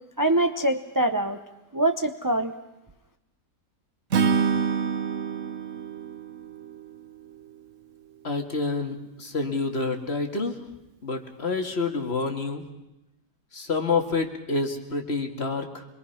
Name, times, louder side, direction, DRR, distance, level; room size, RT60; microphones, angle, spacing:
voice 1, 0.2-1.4 1.7-2.5, right 1 dB, 20° right, 7 dB, 0.5 m, -24 dB
Acoustic guitar / Strum, 4.1-7.4, right 6 dB, 50° right, 1.3 m, -27 dB
voice 2, 8.2-10.5 11.0-12.6 13.5-15.9, left 3 dB, 40° left, 4 dB, 2.2 m, -28 dB
26.5 x 22.0 x 5.8 m, 0.93 s
omnidirectional pair, 1.8 m